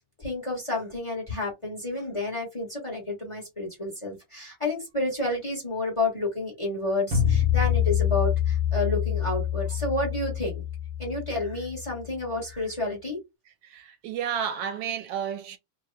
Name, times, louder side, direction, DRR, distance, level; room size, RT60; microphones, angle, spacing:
voice 1, 0.2-10.6 11.0-13.2, left 2 dB, 20° left, 1.0 m, -30 dB
sound 1, 7.1-12.1, left 10 dB, 55° right, 1.1 m, -26 dB
voice 2, 13.7-15.6, right 8 dB, 90° right, 1.3 m, -31 dB
3.1 x 2.3 x 3.1 m
omnidirectional pair, 2.0 m